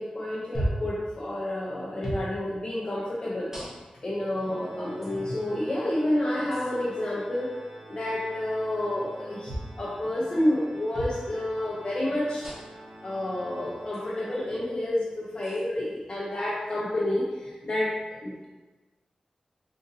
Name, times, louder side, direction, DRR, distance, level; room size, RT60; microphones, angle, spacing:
voice 1, 0.0-3.5 4.0-7.5 7.9-12.5 13.0-17.9 18.2-18.4, left 1 dB, 45° left, -6 dB, 0.6 m, -29 dB
sound 1, 0.5-0.9 2.0-2.3 3.5-4.0 5.0-5.1 6.5-6.7 9.4-9.7 10.9-11.2 12.4-12.8 13.9-14.0 15.4-15.6, equal, 20° right, 1.2 m, -33 dB
Organ, 4.4-15.1, right 1 dB, 45° right, 0.6 m, -48 dB
3.7 x 2.6 x 2.6 m, 1.2 s
wide cardioid pair, 85°, 2 cm